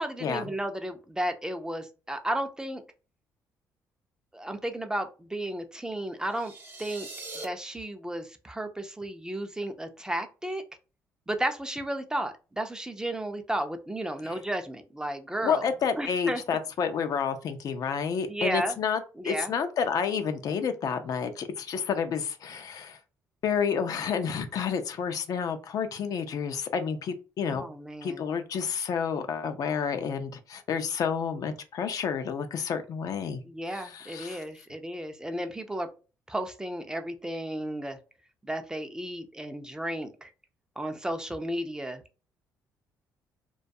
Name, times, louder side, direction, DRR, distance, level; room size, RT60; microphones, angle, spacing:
voice 1, 0.0-2.8 4.3-6.5 6.8-7.1 7.4-10.6 11.3-15.7 16.0-16.4 18.2-18.8 19.2-19.5 27.5-28.2 33.4-35.9 36.3-38.0 38.4-40.3 40.8-42.0, right 1 dB, 10° right, 6 dB, 0.4 m, -33 dB
sound 1, 6.2-7.4, right 2 dB, 30° right, 0.8 m, -42 dB
voice 2, 15.4-23.0 23.4-27.7 28.0-33.4 33.7-34.4, left 6 dB, 60° left, 8 dB, 0.4 m, -30 dB
2.3 x 2.2 x 2.6 m, 0.33 s
supercardioid pair, 70°, 7 cm